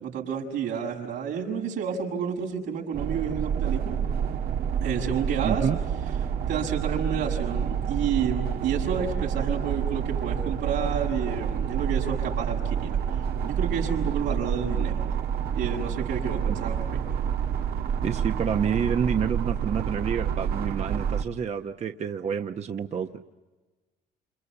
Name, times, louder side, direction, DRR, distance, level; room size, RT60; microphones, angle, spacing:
voice 1, 0.0-4.0 4.8-5.7 6.5-15.1 15.5-17.0, right 7 dB, 85° right, 1 dB, 6.6 m, -30 dB
sound 1, 2.9-21.2, right 8 dB, 70° right, 1.4 m, -28 dB
voice 2, 5.4-5.8 18.0-23.1, right 7 dB, 40° right, 6 dB, 1.1 m, -28 dB
29.0 x 28.0 x 7.1 m, 1.2 s
cardioid pair, 110°, 17 cm